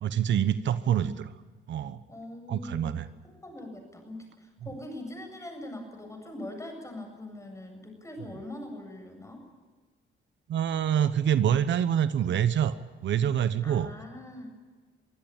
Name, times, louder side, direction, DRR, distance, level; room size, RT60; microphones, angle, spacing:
voice 1, 0.0-1.3 1.7-2.0 2.5-3.1 10.5-12.7 13.0-13.9, right 9 dB, 65° right, 13 dB, 1.0 m, -26 dB
voice 2, 2.1-3.0 3.2-9.4 13.6-14.5, left 1 dB, 15° left, 4 dB, 7.9 m, -42 dB
24.5 x 16.0 x 8.9 m, 1.4 s
cardioid pair, 90°, 20 cm